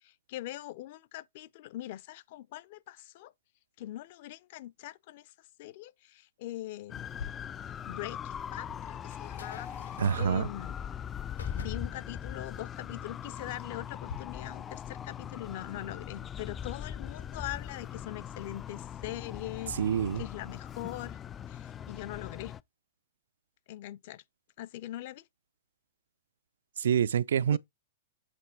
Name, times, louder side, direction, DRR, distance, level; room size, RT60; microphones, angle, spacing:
voice 1, 0.0-3.3 3.8-5.3 5.6-7.1 7.8-9.7 10.2-10.7 11.5-19.7 20.2-21.2 21.5-22.5 23.7-24.2 24.6-25.2 27.5-27.6, left 14 dB, 55° left, 0.6 m, -42 dB
sound 1, 6.9-22.6, left 9 dB, 20° left, 0.3 m, -41 dB
sound 2, 7.1-14.1, left 6 dB, 90° left, 3.6 m, -48 dB
voice 2, 10.0-10.5 19.8-20.2 26.8-27.6, right 8 dB, 80° right, 0.4 m, -26 dB
7.9 x 3.3 x 4.4 m
hypercardioid pair, 135°, 0 cm